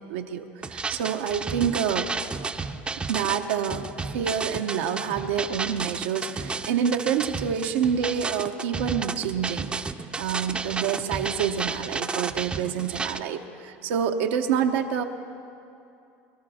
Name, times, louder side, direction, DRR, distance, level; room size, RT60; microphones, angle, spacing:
voice 1, 0.1-2.1 3.1-3.8 4.1-9.7 10.2-15.0, right 8 dB, 85° right, 3 dB, 0.8 m, -27 dB
sound 1, 0.6-13.2, right 4 dB, 15° right, 0.5 m, -32 dB
24.5 x 13.0 x 4.2 m, 2.6 s
supercardioid pair, 115°, 6 cm